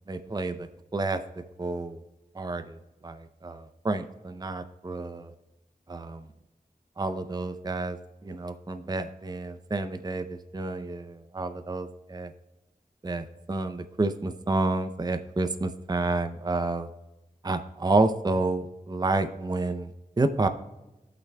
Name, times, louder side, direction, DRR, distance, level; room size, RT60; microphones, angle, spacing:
voice 1, 0.1-1.2 1.6-2.0 2.3-2.8 3.0-5.3 5.9-6.2 7.0-8.0 8.2-12.3 13.0-16.9 17.4-19.9 20.2-20.5, right 2 dB, 25° right, 9 dB, 0.5 m, -29 dB
16.0 x 5.9 x 2.2 m, 1.0 s
wide cardioid pair, 55°, 15 cm